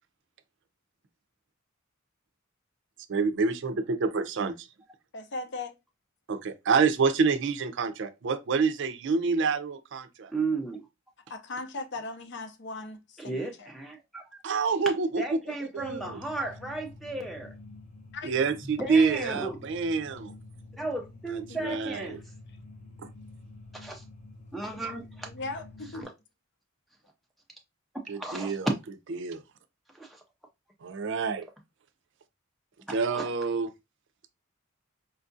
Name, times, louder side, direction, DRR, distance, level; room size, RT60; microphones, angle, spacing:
voice 1, 3.1-4.7 6.3-10.3 14.4-15.4 15.7-16.1 18.2-20.3 21.3-22.2 28.1-28.7 29.1-29.4 30.8-31.5 32.9-33.7, right 4 dB, 60° right, 0.5 m, -27 dB
voice 2, 5.1-5.8 11.3-13.7 18.1-18.3 21.5-21.8 25.3-26.1, left 3 dB, 60° left, 0.6 m, -38 dB
voice 3, 10.3-10.9 13.2-14.2 15.2-17.5 18.8-19.6 20.7-22.2 23.7-24.0 24.5-25.3 25.9-26.1 28.1-28.6 29.9-30.2 32.9-33.2, right 3 dB, ahead, 0.4 m, -35 dB
sound 1, 15.8-26.0, left 2 dB, 35° left, 0.9 m, -48 dB
4.4 x 2.4 x 2.5 m
head